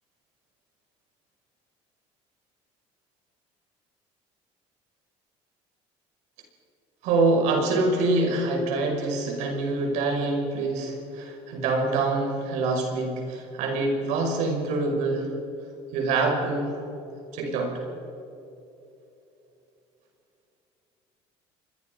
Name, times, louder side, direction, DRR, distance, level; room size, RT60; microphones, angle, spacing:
voice 1, 7.0-15.3 15.9-16.7 17.3-17.8, right 3 dB, 80° right, 2 dB, 5.7 m, -25 dB
28.5 x 21.5 x 5.4 m, 2.9 s
cardioid pair, 135°, 12 cm